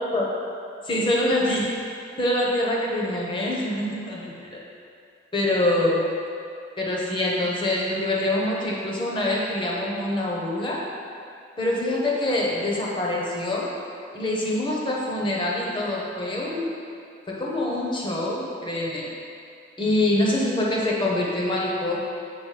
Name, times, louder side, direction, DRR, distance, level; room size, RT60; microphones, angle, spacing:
voice 1, 0.8-1.7 2.2-4.6 5.3-6.0 6.8-10.8 11.6-13.7 14.1-16.7 17.3-19.1 19.8-22.0, left 1 dB, 25° left, -3 dB, 0.8 m, -25 dB
7.9 x 4.0 x 3.3 m, 2.4 s
head